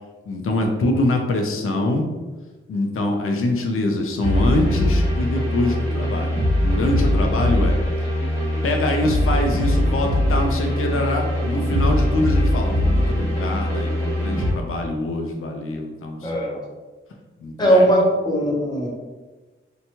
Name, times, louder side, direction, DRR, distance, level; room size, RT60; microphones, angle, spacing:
voice 1, 0.3-2.1 2.7-7.8 8.6-16.3 17.4-17.9, left 2 dB, 90° left, 3 dB, 0.5 m, -24 dB
sound 1, 4.2-14.5, left 1 dB, 15° right, 1.2 m, -21 dB
voice 2, 16.2-16.6 17.6-18.9, right 1 dB, 20° left, -3 dB, 0.6 m, -18 dB
2.8 x 2.2 x 2.8 m, 1.2 s
wide cardioid pair, 110°, 21 cm